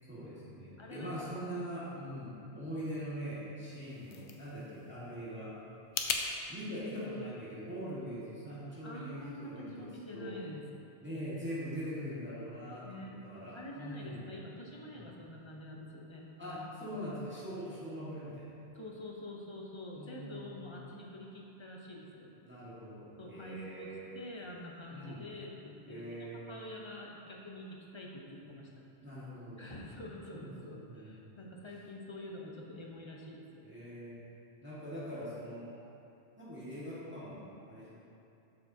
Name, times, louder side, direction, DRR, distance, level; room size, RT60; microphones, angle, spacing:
voice 1, 0.1-5.6 6.5-9.9 10.1-10.4 11.0-14.3 14.9-15.1 16.4-18.6 19.9-20.8 22.4-24.2 24.9-25.3 25.9-26.6 29.0-29.7 30.3-31.4 33.6-34.2 34.6-35.7 36.4-37.9, equal, 10° right, -11 dB, 1.5 m, -42 dB
voice 2, 0.8-1.2 8.8-10.6 12.8-13.2 13.5-17.0 18.7-22.3 23.2-23.9 24.1-28.7 29.6-33.7, left 1 dB, 30° left, -2 dB, 0.7 m, -47 dB
sound 1, 3.6-6.3, left 6 dB, 90° left, 0.9 m, -39 dB
7.5 x 6.7 x 2.7 m, 2.7 s
omnidirectional pair, 1.1 m